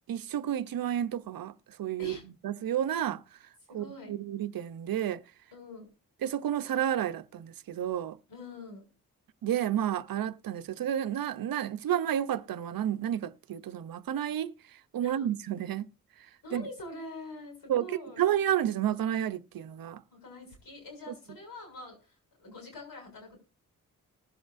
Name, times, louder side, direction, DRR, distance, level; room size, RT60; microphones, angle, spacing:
voice 1, 0.1-3.2 3.7-5.2 6.2-8.2 9.4-14.5 14.9-15.9 16.5-16.7 17.7-20.0 21.1-21.2, right 10 dB, 80° right, 0.7 m, -31 dB
voice 2, 3.7-4.2 5.5-5.9 8.3-8.8 15.0-15.3 16.4-18.2 20.1-23.4, left 2 dB, 90° left, 6.8 m, -45 dB
20.0 x 8.0 x 2.6 m
cardioid pair, 75°, 34 cm